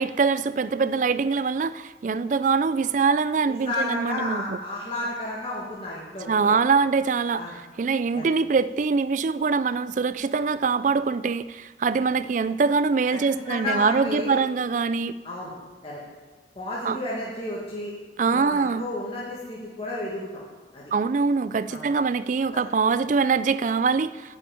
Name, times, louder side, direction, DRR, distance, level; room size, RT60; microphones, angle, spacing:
voice 1, 0.0-4.6 6.3-7.4 7.8-15.1 16.8-17.0 18.2-18.8 20.9-24.4, right 5 dB, 45° right, 15 dB, 0.3 m, -23 dB
voice 2, 3.6-6.6 7.3-7.5 8.1-8.3 13.1-14.4 15.2-15.5 15.8-16.0 16.6-17.9 18.3-20.4 20.7-20.9 21.7-21.9 22.5-22.6, left 2 dB, 30° left, -6 dB, 1.9 m, -32 dB
8.9 x 7.2 x 8.9 m, 1.3 s
head